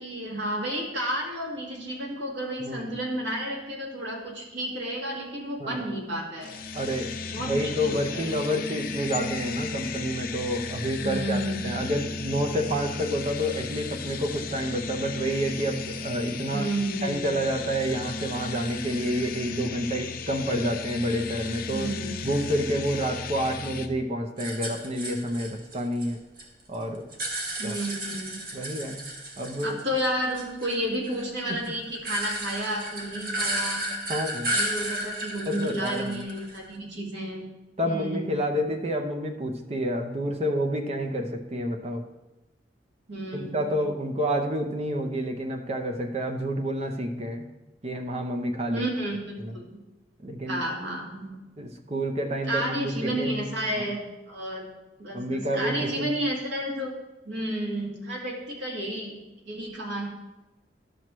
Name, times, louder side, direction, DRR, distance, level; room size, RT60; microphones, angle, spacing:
voice 1, 0.0-6.6 7.3-8.4 11.0-11.7 16.5-17.4 21.7-22.2 27.6-28.4 29.6-33.9 34.4-37.4 37.8-38.4 43.1-43.7 48.7-49.8 50.5-51.4 52.5-54.7 55.0-56.9 57.2-59.2 59.5-60.0, right 1 dB, 85° right, -2 dB, 2.0 m, -31 dB
sound 1, 6.4-23.9, left 4 dB, 55° left, 0.6 m, -35 dB
voice 2, 6.7-16.7 17.0-21.9 22.2-26.2 26.7-27.1 27.6-27.8 28.5-29.0 29.4-29.8 31.5-31.6 34.1-34.5 35.5-36.2 37.8-42.0 43.3-47.5 47.8-48.9 49.4-49.6 50.2-50.6 51.6-53.5 53.8-53.9 55.1-56.2, equal, 35° right, 4 dB, 0.7 m, -29 dB
Metal Slinky Paper Tube, 24.4-26.4 26.7-30.1 30.3-36.7, right 1 dB, 55° right, 1.4 m, -33 dB
12.0 x 6.0 x 3.1 m, 1.0 s
head